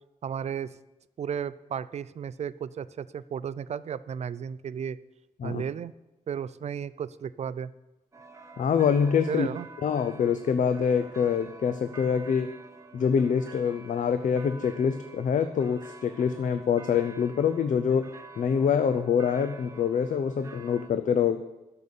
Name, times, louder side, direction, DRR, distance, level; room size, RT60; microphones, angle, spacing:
voice 1, 0.2-0.7 1.2-5.0 5.4-5.9 6.3-7.7 9.3-9.7, right 8 dB, 50° right, 17 dB, 0.4 m, -34 dB
sound 1, 8.1-20.9, right 3 dB, 20° right, 0.9 m, -49 dB
voice 2, 8.6-9.5 9.8-12.5 12.9-18.1 18.4-21.4, left 7 dB, 65° left, 10 dB, 0.6 m, -25 dB
12.0 x 6.8 x 6.9 m, 1.0 s
wide cardioid pair, 165°, 14 cm